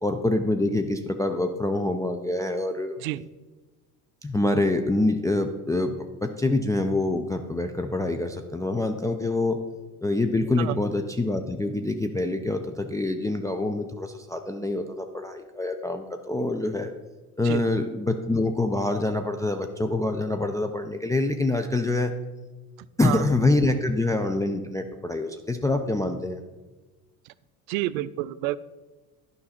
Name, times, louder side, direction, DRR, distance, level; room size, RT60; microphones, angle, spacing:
voice 1, 0.0-3.0 4.2-9.6 10.0-16.9 17.4-22.1 23.0-26.4, left 2 dB, 10° left, 5 dB, 0.4 m, -26 dB
voice 2, 27.7-28.6, right 16 dB, 65° right, 18 dB, 0.5 m, -29 dB
11.5 x 5.3 x 4.2 m, 1.2 s
hypercardioid pair, 65°, 46 cm